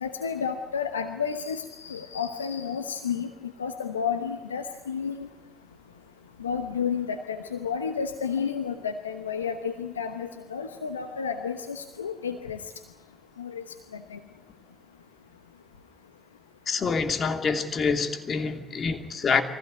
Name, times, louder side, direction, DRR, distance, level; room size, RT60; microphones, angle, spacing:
voice 1, 0.0-5.3 6.4-12.6 13.4-13.6 14.1-14.2, left 6 dB, 90° left, 7 dB, 1.0 m, -31 dB
voice 2, 16.7-19.4, left 5 dB, 45° left, 6 dB, 2.8 m, -26 dB
24.0 x 16.0 x 9.7 m, 1.1 s
hypercardioid pair, 50°, 0 cm